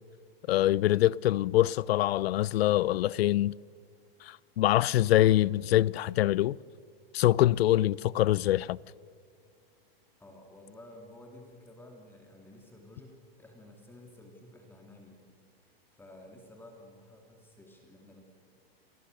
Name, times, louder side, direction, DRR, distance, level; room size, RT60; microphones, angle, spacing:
voice 1, 0.5-3.5 4.2-6.6 7.1-8.8, left 14 dB, 80° left, 0.6 m, -24 dB
voice 2, 10.2-15.2 15.6-18.2, left 1 dB, 5° left, 2.8 m, -52 dB
27.5 x 20.5 x 6.7 m
supercardioid pair, 145°, 30 cm